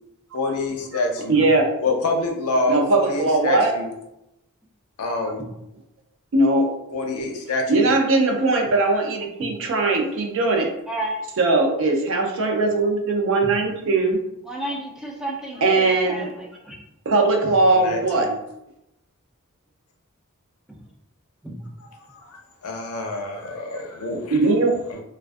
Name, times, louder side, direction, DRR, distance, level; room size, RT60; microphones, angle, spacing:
voice 1, 0.3-1.4 1.8-3.9 5.0-5.4 6.9-7.9 17.7-18.3 22.1-24.4 24.9-25.0, left 2 dB, 75° left, 2 dB, 0.5 m, -27 dB
voice 2, 1.3-1.7 2.7-3.7 6.3-6.7 7.7-10.7 11.4-14.2 15.6-16.3 17.1-18.3 24.3-24.7, right 2 dB, 60° right, 2 dB, 0.5 m, -20 dB
voice 3, 10.9-11.2 13.4-13.5 14.4-16.8 17.4-17.5 20.7-20.8 21.4-21.7, right 1 dB, 5° right, -2 dB, 0.3 m, -32 dB
2.3 x 2.2 x 2.5 m, 0.84 s
head